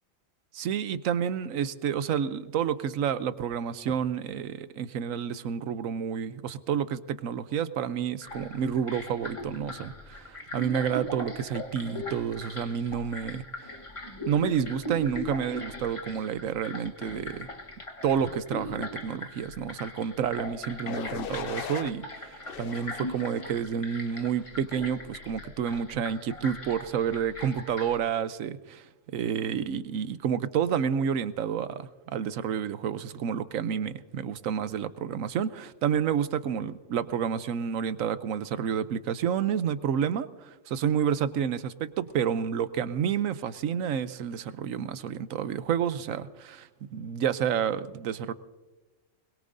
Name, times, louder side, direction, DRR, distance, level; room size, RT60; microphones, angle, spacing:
voice 1, 0.5-13.7 14.3-17.5 18.0-28.8 29.1-48.3, right 8 dB, 85° right, 14 dB, 1.1 m, -29 dB
sound 1, 8.2-28.0, left 1 dB, 25° left, 1.2 m, -40 dB
sound 2, 20.9-21.9 22.5-23.5 24.1-24.5, left 8 dB, 55° left, 0.7 m, -39 dB
22.0 x 21.5 x 2.6 m, 1.2 s
omnidirectional pair, 1.4 m